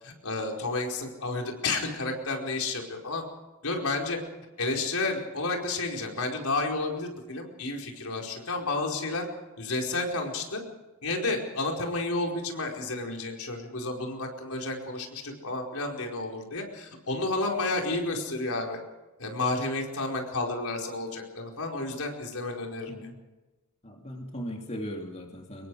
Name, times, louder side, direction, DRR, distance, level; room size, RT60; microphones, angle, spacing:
voice 1, 0.0-3.3 3.6-4.2 4.6-9.2 9.6-10.6 11.0-18.8 19.2-22.9, left 2 dB, 75° left, 1 dB, 4.8 m, -31 dB
voice 2, 23.8-25.7, equal, 30° left, 1 dB, 2.8 m, -38 dB
26.0 x 22.5 x 4.9 m, 1.1 s
head